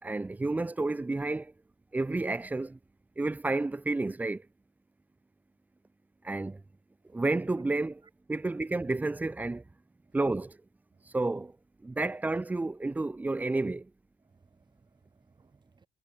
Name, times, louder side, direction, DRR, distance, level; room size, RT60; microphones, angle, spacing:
voice 1, 0.0-1.5 1.9-2.8 3.2-4.4 6.2-6.6 7.1-8.0 8.3-9.6 10.1-10.6 11.1-11.5 11.8-13.9, right 2 dB, 10° right, 0.4 m, -30 dB
voice 2, 14.2-15.9, right 5 dB, 25° right, 3.4 m, -66 dB
cardioid pair, 110°, 17 cm